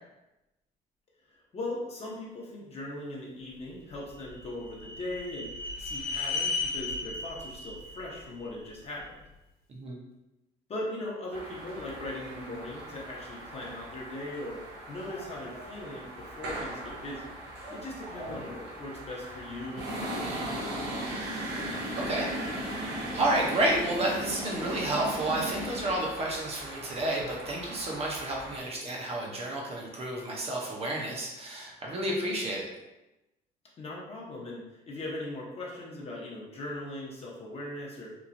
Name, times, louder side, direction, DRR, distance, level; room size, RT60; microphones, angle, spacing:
voice 1, 1.5-9.2 10.7-14.6 14.9-17.4 17.7-20.6 33.8-38.1, left 1 dB, 35° left, -3 dB, 0.8 m, -39 dB
sound 1, 3.9-9.1, left 3 dB, 60° left, 0.5 m, -36 dB
sound 2, 11.3-28.6, right 1 dB, 90° right, 0.7 m, -38 dB
voice 2, 21.9-22.3 22.9-32.7, right 1 dB, 35° right, -2 dB, 0.6 m, -31 dB
3.0 x 2.3 x 2.5 m, 0.97 s
cardioid pair, 110°, 17 cm